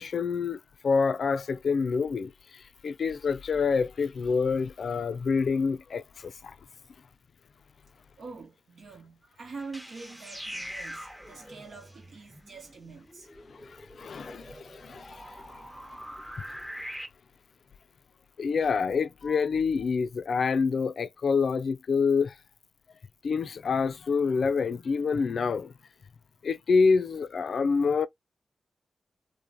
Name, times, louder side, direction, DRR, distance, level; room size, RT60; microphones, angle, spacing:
voice 1, 0.0-6.5 13.5-15.3 18.4-22.3 23.2-25.7 26.4-28.1, left 5 dB, 70° left, 0.3 m, -27 dB
voice 2, 8.2-13.3, right 4 dB, 75° right, 1.0 m, -45 dB
sound 1, 9.6-17.1, equal, 10° right, 0.7 m, -43 dB
3.0 x 2.2 x 2.5 m
cardioid pair, 50°, 0 cm